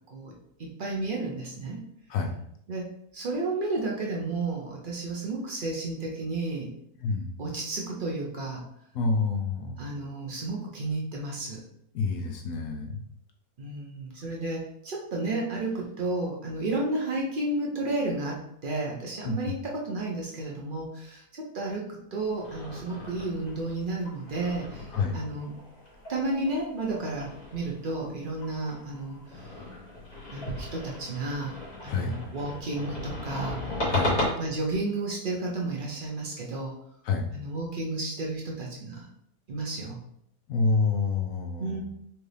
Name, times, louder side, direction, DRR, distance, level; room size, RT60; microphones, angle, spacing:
voice 1, 0.6-1.8 2.7-2.9 3.1-6.7 7.4-8.6 9.8-11.6 13.6-25.5 26.1-29.5 30.3-33.6 34.4-36.7 37.3-39.1 39.5-40.0 41.6-41.8, right 2 dB, 65° right, -2 dB, 0.5 m, -32 dB
voice 2, 7.0-7.3 8.9-9.8 11.9-13.0 19.2-19.5 24.9-25.2 31.9-32.2 33.9-34.2 37.0-37.5 40.5-41.8, left 4 dB, 70° left, 2 dB, 0.9 m, -28 dB
sound 1, 22.2-34.3, left 1 dB, 30° left, 1.2 m, -36 dB
4.5 x 2.6 x 3.2 m, 0.73 s
omnidirectional pair, 1.8 m